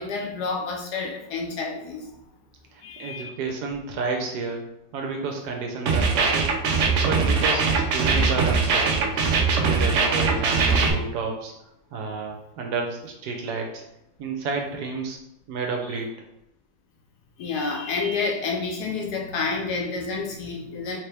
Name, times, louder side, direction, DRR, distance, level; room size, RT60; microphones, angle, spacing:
voice 1, 0.0-2.1 2.8-3.3 17.4-21.0, left 4 dB, 70° left, 0 dB, 1.1 m, -29 dB
voice 2, 2.7-4.6 4.9-9.3 9.6-11.5 11.9-13.8 14.2-15.2 15.5-16.1, right 4 dB, 70° right, 2 dB, 1.1 m, -31 dB
sound 1, 5.9-10.9, right 4 dB, 90° right, 0.6 m, -21 dB
3.6 x 2.9 x 3.3 m, 0.83 s
omnidirectional pair, 1.9 m